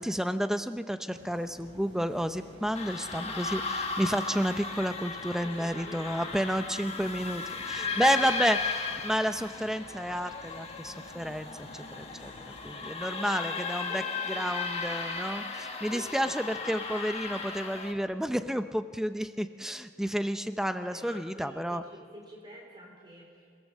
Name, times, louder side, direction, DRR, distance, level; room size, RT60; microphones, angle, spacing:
voice 1, 0.0-8.6 9.0-12.3 12.6-14.0 14.3-21.8, equal, 5° right, 9 dB, 0.7 m, -31 dB
sound 1, 1.1-12.9, equal, 80° right, 6.8 m, -52 dB
sound 2, 2.7-17.9, left 4 dB, 35° left, 1.7 m, -36 dB
voice 2, 5.4-6.9 7.8-8.3 12.7-14.6 15.9-16.3 20.8-23.6, right 1 dB, 25° right, -1 dB, 3.2 m, -49 dB
29.0 x 17.0 x 7.4 m, 2.2 s
head